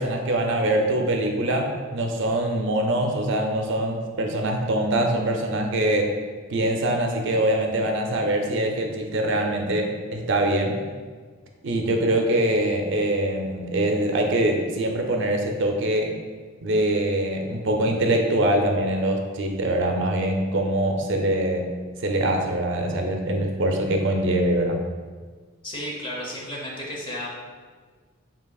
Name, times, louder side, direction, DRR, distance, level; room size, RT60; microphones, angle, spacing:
voice 1, 0.0-6.2 6.5-10.8 11.6-16.1 16.6-21.7 22.0-24.8, right 1 dB, 60° right, 2 dB, 0.5 m, -23 dB
voice 2, 25.6-27.3, left 1 dB, 25° left, -3 dB, 0.9 m, -33 dB
7.3 x 2.8 x 2.3 m, 1.5 s
head